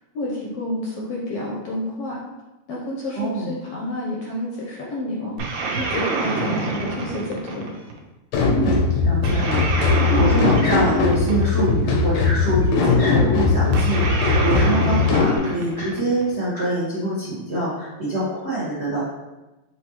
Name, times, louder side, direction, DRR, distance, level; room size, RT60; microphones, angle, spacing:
voice 1, 0.1-2.2 2.7-5.4 5.8-7.7, left 1 dB, 75° left, -3 dB, 1.5 m, -29 dB
voice 2, 3.1-3.6 8.5-8.8 9.0-19.0, right 2 dB, 50° right, -9 dB, 0.7 m, -25 dB
sound 1, 5.4-8.0 9.2-11.8 13.7-16.3, right 3 dB, 75° right, 1.9 m, -26 dB
sound 2, 8.3-15.4, left 4 dB, 90° left, 2.2 m, -19 dB
5.8 x 3.0 x 2.9 m, 1.1 s
omnidirectional pair, 3.3 m